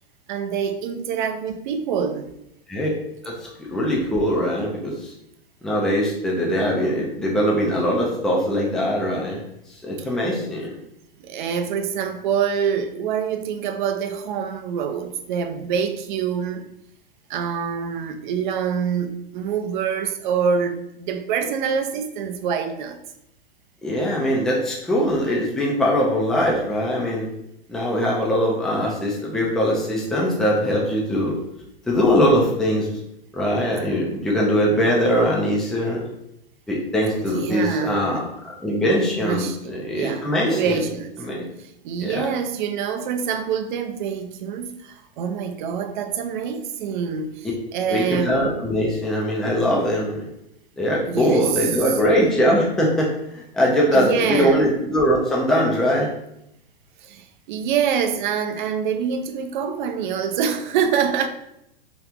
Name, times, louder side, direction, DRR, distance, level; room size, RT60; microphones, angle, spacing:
voice 1, 0.3-2.3 10.0-10.1 11.2-16.7 17.3-23.0 37.3-38.2 39.2-41.1 41.6-48.4 51.1-52.0 53.9-54.7 57.0-61.3, right 7 dB, 55° right, 0.5 m, -26 dB
voice 2, 3.6-5.1 5.6-9.4 9.8-10.7 23.8-27.3 27.7-31.3 31.9-32.9 33.3-36.0 36.7-38.2 38.6-40.8 41.2-41.4 42.0-42.3 47.9-50.3 50.8-56.1, equal, ahead, 0.4 m, -21 dB
2.9 x 2.4 x 3.4 m
hypercardioid pair, 130°, 29 cm